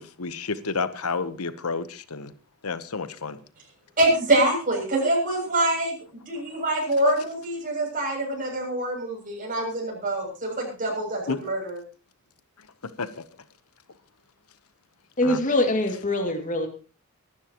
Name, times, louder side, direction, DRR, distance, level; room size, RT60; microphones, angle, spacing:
voice 1, 0.0-2.3 2.6-3.4 6.4-6.5 11.3-11.4 12.6-13.2 15.2-15.4, left 4 dB, 90° left, 13 dB, 1.1 m, -31 dB
voice 2, 4.0-5.9 6.3-11.8, right 1 dB, 40° right, -1 dB, 7.4 m, -25 dB
voice 3, 15.2-16.7, left 1 dB, 35° left, 3 dB, 2.5 m, -23 dB
24.0 x 12.0 x 3.0 m, 0.36 s
head